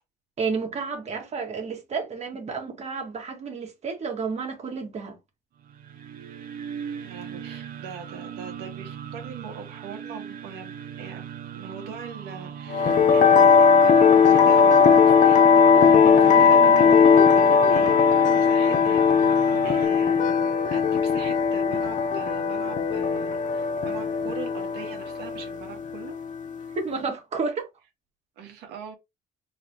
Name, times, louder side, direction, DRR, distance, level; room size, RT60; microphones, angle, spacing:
voice 1, 0.4-5.2 26.8-27.7, right 4 dB, 40° right, 1.9 m, -31 dB
sound 1, 5.6-19.9, right 8 dB, 60° right, 0.8 m, -39 dB
voice 2, 7.0-11.2 11.5-26.1 28.4-29.0, right 6 dB, 85° right, 1.8 m, -41 dB
sound 2, 12.7-26.8, left 6 dB, 50° left, 0.6 m, -18 dB
4.1 x 3.3 x 3.0 m
cardioid pair, 110°, 17 cm